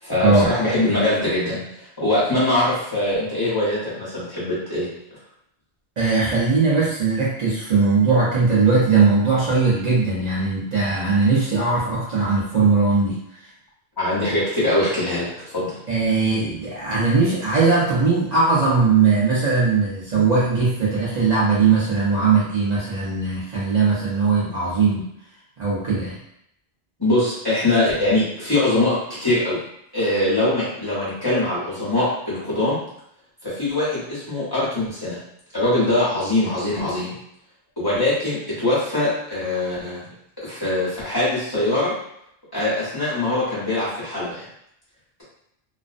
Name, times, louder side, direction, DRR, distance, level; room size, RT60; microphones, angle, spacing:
voice 1, 0.0-4.9 14.0-15.8 20.1-20.2 27.0-29.6 29.9-32.8 33.4-35.2 35.5-37.2 37.8-40.0 40.4-41.9 42.5-44.5, left 1 dB, 25° left, -10 dB, 0.9 m, -22 dB
voice 2, 6.0-13.2 15.9-25.1 25.6-26.2, right 4 dB, 50° right, -8 dB, 0.7 m, -19 dB
2.4 x 2.1 x 2.4 m, 0.74 s
omnidirectional pair, 1.0 m